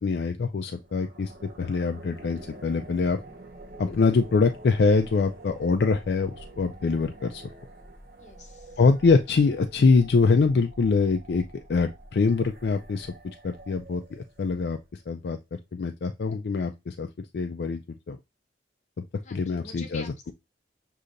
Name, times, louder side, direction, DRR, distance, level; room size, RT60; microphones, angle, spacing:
voice 1, 0.0-3.2 3.8-7.4 8.8-13.1 13.4-15.4 15.7-17.8 18.1-18.2 19.3-20.3, left 4 dB, 65° left, 0.4 m, -24 dB
sound 1, 0.8-14.9, right 1 dB, 55° right, 0.8 m, -47 dB
voice 2, 8.1-8.8 19.2-20.3, left 4 dB, 40° left, 1.0 m, -46 dB
6.5 x 2.8 x 2.5 m
head